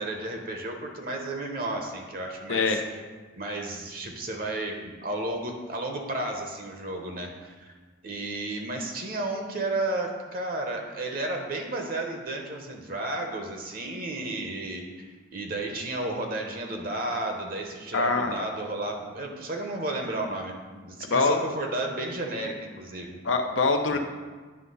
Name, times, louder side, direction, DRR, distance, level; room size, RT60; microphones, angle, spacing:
voice 1, 0.0-2.8 3.3-7.7 8.0-15.1 15.3-23.2 23.9-24.0, right 2 dB, 50° right, 2 dB, 0.8 m, -33 dB
voice 2, 2.5-2.8 17.9-18.4 21.0-21.4 23.2-24.0, left 4 dB, 80° left, 5 dB, 0.8 m, -24 dB
9.7 x 3.4 x 5.5 m, 1.4 s
head